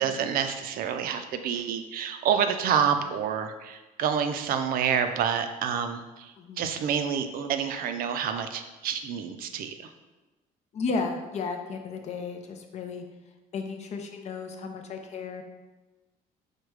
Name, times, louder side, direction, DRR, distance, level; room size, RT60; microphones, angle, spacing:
voice 1, 0.0-9.7, right 8 dB, 65° right, 8 dB, 0.4 m, -28 dB
voice 2, 6.4-6.8 10.7-13.0 13.5-15.4, left 4 dB, 45° left, 5 dB, 0.6 m, -34 dB
4.8 x 2.2 x 4.6 m, 1.1 s
cardioid pair, 135°, 16 cm